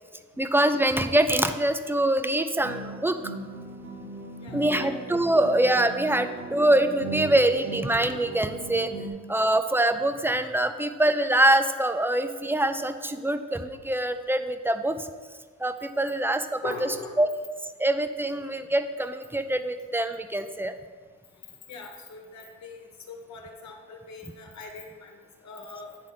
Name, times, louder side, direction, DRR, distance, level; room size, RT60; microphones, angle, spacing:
voice 1, 0.4-3.2 4.5-15.1 15.6-16.7 17.2-17.3 17.8-20.7, right 1 dB, 5° right, 8 dB, 0.5 m, -24 dB
sound 1, 2.6-9.1, right 2 dB, 35° right, 1.1 m, -38 dB
voice 2, 4.4-4.9 16.1-16.2 16.6-17.2 21.7-26.0, left 4 dB, 65° left, 2 dB, 1.3 m, -42 dB
9.0 x 3.7 x 5.9 m, 1.6 s
cardioid pair, 90°, 30 cm